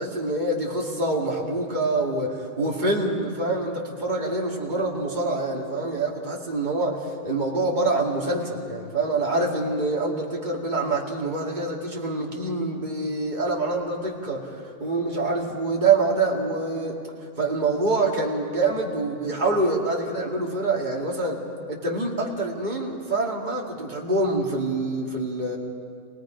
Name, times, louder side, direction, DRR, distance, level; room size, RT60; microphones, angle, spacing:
voice 1, 0.0-17.0 17.4-21.4 21.7-25.6, right 2 dB, 35° right, -2 dB, 2.4 m, -26 dB
28.0 x 18.5 x 5.2 m, 2.2 s
omnidirectional pair, 1.4 m